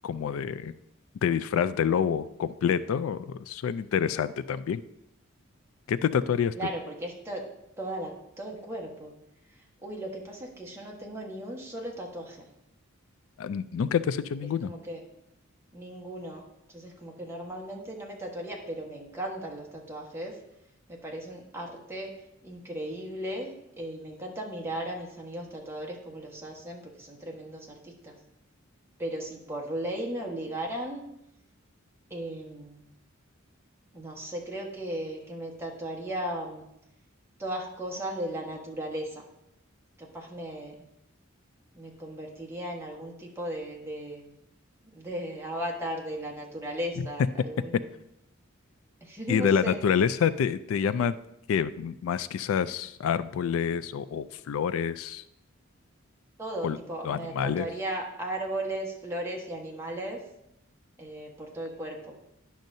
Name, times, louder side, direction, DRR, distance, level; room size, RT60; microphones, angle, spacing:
voice 1, 0.0-0.7 1.2-4.8 5.9-6.5 13.4-14.7 47.0-47.1 49.3-51.2 51.5-55.2 56.6-56.8 57.0-57.7, left 7 dB, 75° left, 15 dB, 0.3 m, -27 dB
voice 2, 6.5-7.4 7.8-9.1 9.8-12.4 14.4-15.0 15.7-16.4 16.7-20.3 21.0-22.1 22.4-23.5 23.8-28.1 29.0-31.0 32.1-32.8 33.9-36.6 37.4-39.2 40.0-40.7 41.7-44.3 44.9-48.0 49.0-50.1 56.4-60.2 61.0-62.2, right 1 dB, 15° right, -1 dB, 1.3 m, -36 dB
10.5 x 6.3 x 2.7 m, 0.80 s
head